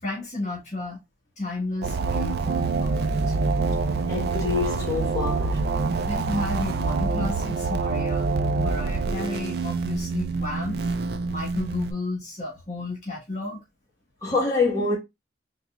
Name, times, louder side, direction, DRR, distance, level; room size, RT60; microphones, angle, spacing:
voice 1, 0.0-1.0 1.4-3.3 6.0-10.8 11.3-13.6, left 2 dB, 40° left, 1.6 m, -33 dB
sound 1, 1.8-11.9, right 3 dB, 60° right, 0.4 m, -26 dB
voice 2, 4.1-5.6 14.2-15.0, left 3 dB, 20° left, 1.7 m, -25 dB
4.1 x 3.3 x 2.4 m
head